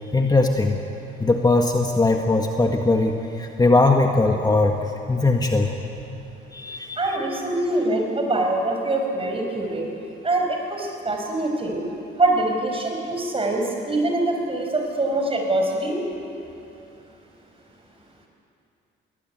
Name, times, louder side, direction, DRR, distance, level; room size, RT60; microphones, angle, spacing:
voice 1, 0.1-0.8 1.2-4.8 5.1-5.7 6.5-7.1, left 2 dB, 20° left, 2 dB, 1.7 m, -20 dB
voice 2, 7.0-9.9 10.2-11.8 12.2-16.0, right 2 dB, 30° right, 2 dB, 5.6 m, -24 dB
21.5 x 19.5 x 9.3 m, 2.8 s
cardioid pair, 90°, 20 cm